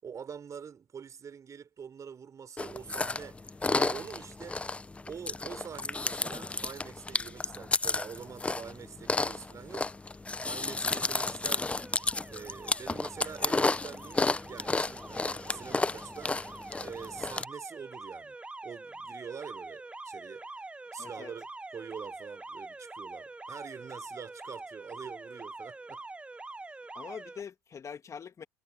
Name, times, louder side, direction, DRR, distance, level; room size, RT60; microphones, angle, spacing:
voice 1, 0.0-3.4 3.7-4.6 5.1-10.0 10.4-11.8 12.3-16.5 16.8-18.4 18.6-20.6 20.9-21.5 21.7-26.0, right 7 dB, 35° right, 4.4 m, -45 dB
Chewing mastication, 2.6-17.4, left 3 dB, 10° left, 0.6 m, -32 dB
Alarm, 11.8-27.4, right 2 dB, 10° right, 1.0 m, -45 dB
voice 2, 21.0-21.3 26.9-28.4, left 7 dB, 30° left, 2.2 m, -43 dB
hypercardioid pair, 75°, 10 cm